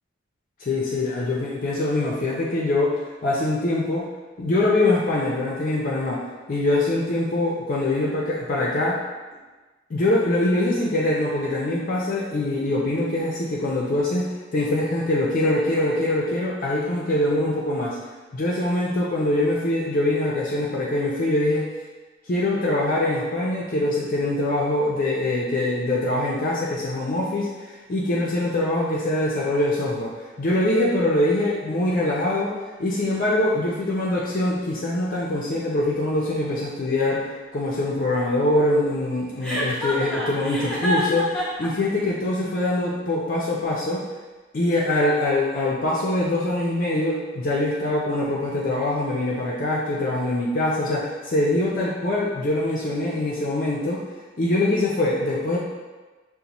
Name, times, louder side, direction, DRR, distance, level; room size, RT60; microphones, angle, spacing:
voice 1, 0.6-2.9 3.2-4.1 4.4-6.2 6.5-9.0 9.9-18.0 18.3-21.7 22.3-27.5 27.9-37.2 37.5-44.1 44.5-54.0 54.4-55.6, left 1 dB, 45° left, -5 dB, 0.5 m, -23 dB
Chuckle chortle, 39.4-41.7, left 1 dB, 5° left, 0.7 m, -27 dB
5.2 x 2.1 x 2.9 m, 1.3 s
head